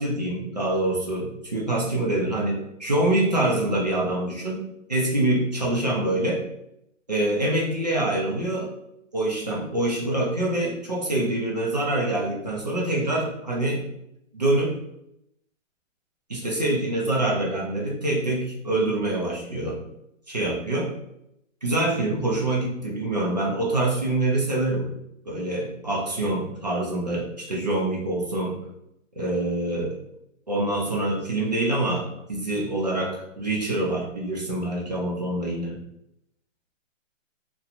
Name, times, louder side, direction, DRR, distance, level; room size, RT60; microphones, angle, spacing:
voice 1, 0.0-4.6 4.9-6.4 7.1-8.7 9.1-13.8 14.3-14.8 16.3-19.8 20.3-20.9 21.6-24.9 25.3-28.6 29.2-30.0 30.5-35.8, right 1 dB, 35° right, -4 dB, 0.5 m, -25 dB
2.9 x 2.2 x 2.4 m, 0.80 s
hypercardioid pair, 180°, 39 cm